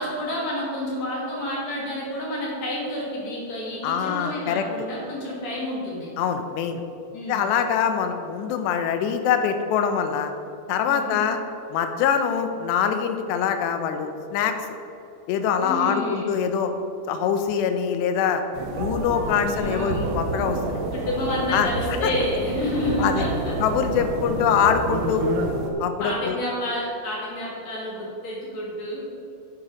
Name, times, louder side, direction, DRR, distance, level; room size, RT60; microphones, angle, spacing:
voice 1, 0.0-6.1 7.1-7.5 10.9-11.2 15.6-16.3 19.4-20.1 20.9-23.5 26.0-29.0, left 1 dB, 45° left, -5 dB, 3.3 m, -29 dB
voice 2, 3.8-4.7 6.2-6.8 7.3-10.3 10.7-11.4 11.7-14.5 15.3-16.7 17.1-18.4 18.8-20.8 21.5-21.7 22.0-22.1 23.0-23.3 23.6-25.3 25.8-26.4, left 7 dB, 90° left, 7 dB, 2.9 m, -24 dB
sound 1, 18.5-25.7, right 2 dB, 70° right, 2.0 m, -29 dB
10.5 x 7.4 x 5.1 m, 2.8 s
omnidirectional pair, 4.9 m